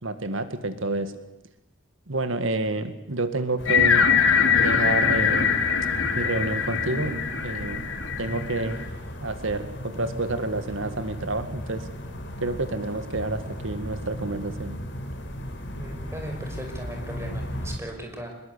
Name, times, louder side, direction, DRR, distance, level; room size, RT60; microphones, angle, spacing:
voice 1, 0.0-1.1 2.1-4.0 4.6-5.6 6.2-7.8 8.2-8.8 9.2-11.8 12.4-14.8, right 2 dB, 75° right, 10 dB, 1.9 m, -29 dB
sound 1, 3.6-17.8, equal, 60° left, 3.9 m, -36 dB
sound 2, 3.7-8.9, left 6 dB, 80° left, 3.4 m, -22 dB
voice 2, 15.8-18.3, right 1 dB, 15° right, 2 dB, 5.7 m, -37 dB
25.5 x 21.5 x 8.3 m, 0.92 s
head